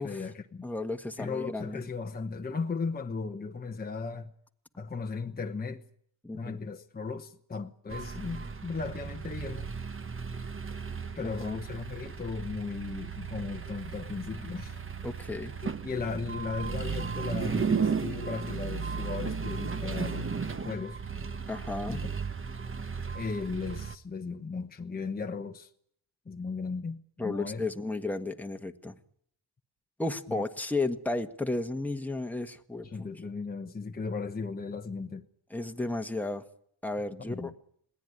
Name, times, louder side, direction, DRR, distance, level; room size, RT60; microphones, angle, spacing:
voice 1, 0.0-0.6 1.2-4.3 4.8-5.8 6.3-9.8 11.2-14.8 15.6-20.3 20.6-21.0 21.9-22.1 23.1-25.7 26.2-27.7 30.3-30.4 32.8-35.2 37.2-37.5, left 4 dB, 20° left, 1.1 m, -36 dB
voice 2, 0.6-1.8 6.2-6.6 11.2-11.6 15.0-15.6 21.5-22.0 27.2-28.9 30.0-33.1 35.5-36.4 36.8-37.5, left 2 dB, 5° left, 1.4 m, -33 dB
sound 1, 7.9-23.9, right 5 dB, 25° right, 1.2 m, -35 dB
21.5 x 17.0 x 9.8 m
cardioid pair, 85°, 47 cm